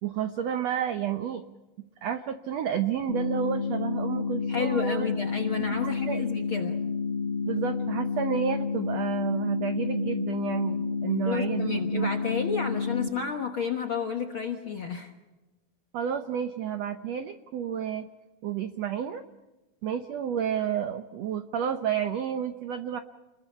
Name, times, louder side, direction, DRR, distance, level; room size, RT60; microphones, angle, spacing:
voice 1, 0.0-1.4 2.0-5.1 5.6-6.3 7.4-12.1 15.9-18.1 18.4-19.2 19.8-23.0, right 9 dB, 85° right, 8 dB, 1.4 m, -30 dB
sound 1, 3.1-13.1, left 5 dB, 35° left, 6.6 m, -30 dB
voice 2, 4.5-6.8 11.3-15.1, left 6 dB, 60° left, 3 dB, 1.3 m, -31 dB
29.5 x 21.5 x 5.7 m, 1.1 s
omnidirectional pair, 4.3 m